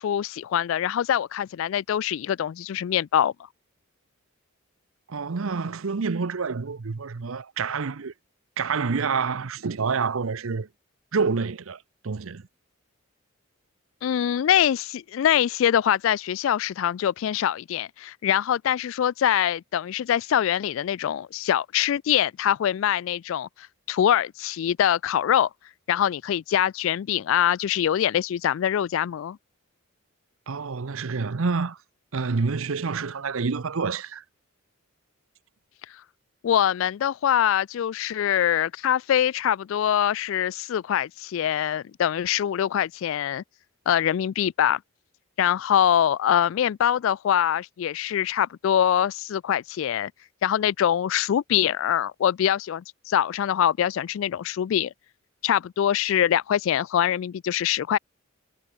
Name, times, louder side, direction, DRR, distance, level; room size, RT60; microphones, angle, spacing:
voice 1, 0.0-3.3 14.0-25.5 25.9-29.4 36.4-43.4 43.9-44.8 45.4-50.1 50.4-54.9 55.4-58.0, left 10 dB, 65° left, 0.3 m, -24 dB
voice 2, 5.1-8.1 8.6-10.7 11.1-11.8 12.0-12.4 30.5-31.8 32.1-34.2, right 5 dB, 75° right, 0.7 m, -27 dB
head